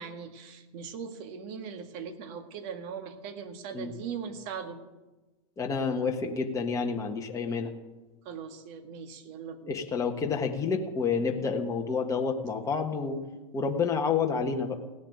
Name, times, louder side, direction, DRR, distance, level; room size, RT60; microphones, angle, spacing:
voice 1, 0.0-4.8 8.3-9.8, right 6 dB, 45° right, 7 dB, 1.8 m, -40 dB
voice 2, 5.6-7.7 9.7-13.2 13.5-14.8, left 5 dB, 15° left, 2 dB, 1.4 m, -29 dB
16.5 x 7.3 x 9.9 m, 1.2 s
hypercardioid pair, 125°, 19 cm